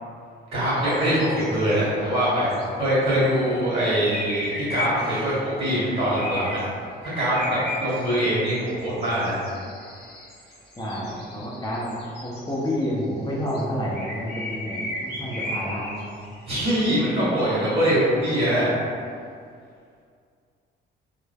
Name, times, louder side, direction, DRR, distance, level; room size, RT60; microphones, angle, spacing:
voice 1, 0.5-6.6 7.0-9.4 16.5-18.7, equal, 30° right, -10 dB, 1.5 m, -23 dB
sound 1, 0.6-2.0 2.3-2.6 3.6-5.3 5.9-6.6 7.0-13.6 13.9-17.9, left 1 dB, 60° left, 0.9 m, -35 dB
voice 2, 10.8-11.9 12.2-16.2, equal, 20° left, -6 dB, 0.6 m, -29 dB
3.2 x 2.0 x 2.2 m, 2.3 s
cardioid pair, 90°, 20 cm